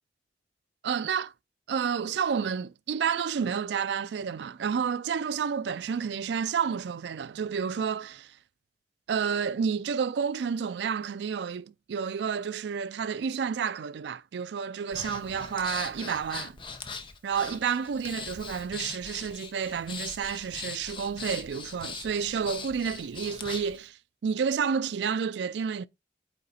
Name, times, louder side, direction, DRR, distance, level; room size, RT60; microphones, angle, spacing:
voice 1, 0.8-1.3 1.7-8.3 9.1-16.6 17.2-25.9, right 6 dB, 80° right, 0.4 m, -30 dB
Breathing, 14.9-23.8, left 5 dB, 30° left, 0.8 m, -41 dB
8.8 x 3.7 x 4.2 m
head